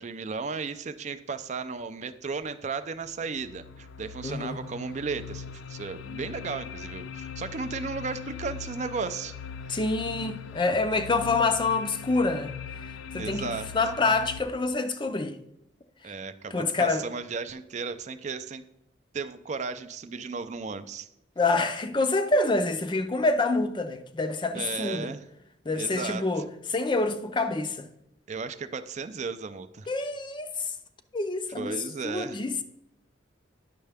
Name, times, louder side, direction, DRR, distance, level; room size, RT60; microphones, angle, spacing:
voice 1, 0.0-9.3 9.7-9.8 13.2-13.7 16.0-18.6 19.1-21.1 24.5-25.2 25.8-26.4 28.3-29.9 31.5-32.4, right 4 dB, 40° right, 0.4 m, -35 dB
sound 1, 3.0-14.4, left 6 dB, 85° left, 0.4 m, -40 dB
voice 2, 4.2-4.6 9.7-12.5 13.1-15.4 16.5-17.0 21.4-25.1 25.7-27.9 29.9-30.7 31.1-32.6, left 3 dB, 25° left, 0.5 m, -27 dB
9.8 x 6.4 x 3.4 m
head